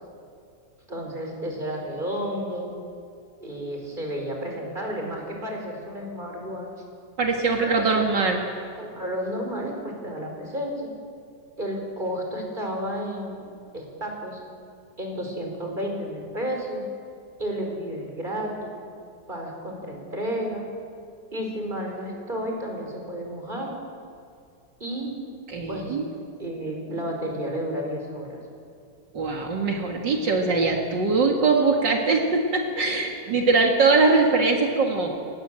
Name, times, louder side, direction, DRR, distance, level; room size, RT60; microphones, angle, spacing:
voice 1, 0.9-2.7 3.4-6.7 7.8-8.0 8.8-10.9 11.6-13.4 13.7-14.4 15.0-16.8 17.4-18.7 19.3-20.7 21.3-23.7 24.8-25.1 25.7-28.4, equal, 25° right, 1 dB, 5.0 m, -32 dB
voice 2, 7.2-8.4 25.5-26.1 29.1-35.2, right 3 dB, 80° right, 1 dB, 2.7 m, -22 dB
28.5 x 18.5 x 7.8 m, 2.4 s
omnidirectional pair, 1.9 m